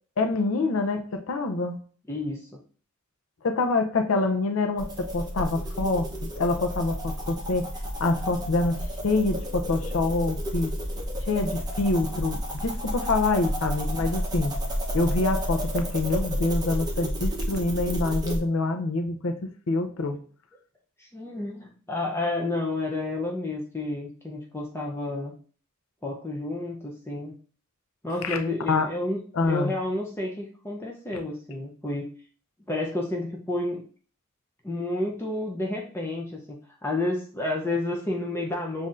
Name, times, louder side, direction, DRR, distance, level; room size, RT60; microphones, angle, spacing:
voice 1, 0.2-1.8 3.4-7.7 8.0-10.7 11.2-14.5 14.9-19.4 19.7-20.2 28.2-28.4 28.7-28.9 29.3-29.7, left 3 dB, 70° left, 6 dB, 0.5 m, -26 dB
voice 2, 2.1-2.6 21.0-25.3 26.0-27.4 28.0-32.1 32.7-33.8 34.6-38.9, left 2 dB, 10° left, 0 dB, 0.6 m, -30 dB
sound 1, 4.8-18.4, equal, 20° right, 0.8 m, -31 dB
7.2 x 2.6 x 2.5 m, 0.42 s
head